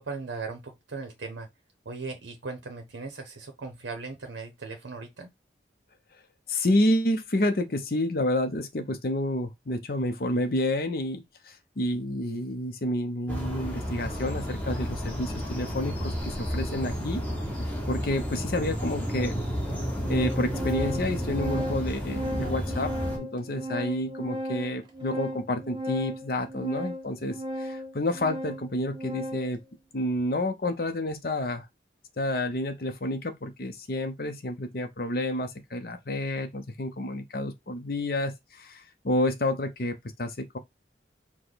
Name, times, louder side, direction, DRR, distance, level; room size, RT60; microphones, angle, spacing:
voice 1, 0.0-1.5 1.9-5.3, right 4 dB, 90° right, 0.7 m, -38 dB
voice 2, 6.5-17.2 17.9-19.4 20.1-22.9 23.2-29.6 29.9-31.7 32.2-40.6, left 1 dB, 55° left, 0.7 m, -29 dB
sound 1, 13.3-23.2, equal, 10° left, 0.9 m, -32 dB
Organ, 18.3-18.4 19.3-19.4 19.7-29.6, equal, 25° right, 0.9 m, -36 dB
4.8 x 2.2 x 4.0 m
head